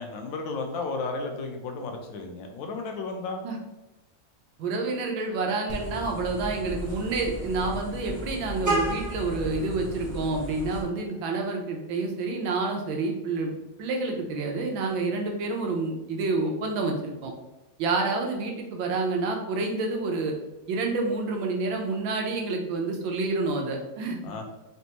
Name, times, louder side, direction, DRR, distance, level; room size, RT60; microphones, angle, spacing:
voice 1, 0.0-3.4 24.2-24.5, left 3 dB, 80° left, 3 dB, 1.4 m, -33 dB
voice 2, 4.6-13.5 13.8-17.3 17.8-20.3 20.7-24.2, right 3 dB, 90° right, 2 dB, 1.5 m, -28 dB
Vehicle horn car horn honking, 5.7-10.8, right 1 dB, 15° right, 0.6 m, -33 dB
4.1 x 3.4 x 2.9 m, 1.0 s
omnidirectional pair, 2.1 m